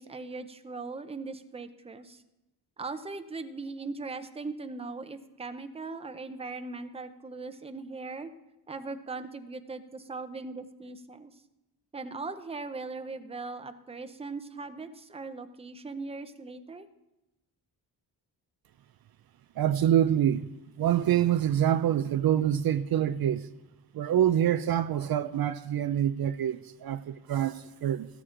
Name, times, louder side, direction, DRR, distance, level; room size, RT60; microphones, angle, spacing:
voice 1, 0.0-2.2 2.8-8.3 8.7-11.3 11.9-16.9, right 3 dB, 15° right, 0.6 m, -39 dB
voice 2, 19.6-20.5 20.8-23.5 23.9-28.1, right 10 dB, 60° right, 0.5 m, -26 dB
14.5 x 13.0 x 3.8 m
wide cardioid pair, 140°, 41 cm